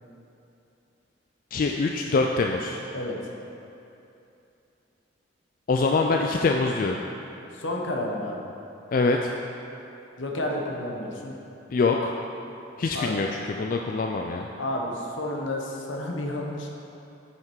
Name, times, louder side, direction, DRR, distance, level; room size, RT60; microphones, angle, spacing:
voice 1, 1.5-2.8 5.7-7.0 8.9-9.3 11.7-12.1 12.8-14.5, left 3 dB, 45° left, 2 dB, 0.3 m, -24 dB
voice 2, 2.9-3.3 7.5-8.4 10.2-11.3 12.9-13.1 14.6-16.7, left 1 dB, 80° left, 0 dB, 1.0 m, -31 dB
7.6 x 5.8 x 4.5 m, 2.8 s
head